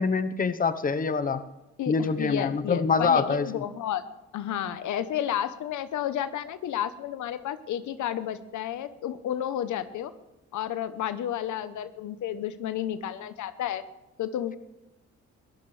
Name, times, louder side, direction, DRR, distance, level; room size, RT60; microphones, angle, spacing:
voice 1, 0.0-1.5 1.9-3.5, left 5 dB, 30° left, 11 dB, 1.0 m, -25 dB
voice 2, 1.8-4.0 4.3-10.1 10.5-13.8 14.2-14.6, left 10 dB, 75° left, 12 dB, 1.0 m, -31 dB
21.5 x 14.5 x 3.3 m, 0.99 s
cardioid pair, 90°, 30 cm